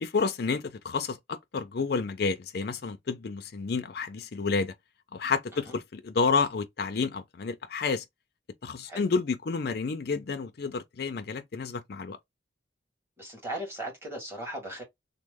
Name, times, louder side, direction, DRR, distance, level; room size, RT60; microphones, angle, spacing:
voice 1, 0.0-4.7 5.1-8.0 8.6-12.2, left 4 dB, 55° left, 0.5 m, -30 dB
voice 2, 13.2-14.8, right 1 dB, 15° right, 1.7 m, -38 dB
3.1 x 2.1 x 3.4 m
head